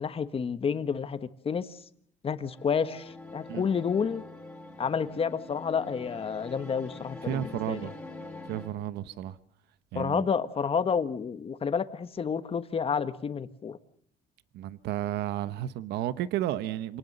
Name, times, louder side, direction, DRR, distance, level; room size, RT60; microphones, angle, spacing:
voice 1, 0.0-1.8 2.2-4.2 4.8-7.8 9.9-13.8, left 6 dB, 35° left, 1.4 m, -30 dB
sound 1, 2.4-8.7, left 2 dB, 5° left, 4.1 m, -44 dB
voice 2, 7.2-7.9 8.5-9.4 9.9-10.2 14.5-17.0, right 12 dB, 80° right, 1.0 m, -32 dB
27.0 x 19.0 x 6.8 m
cardioid pair, 110°, 17 cm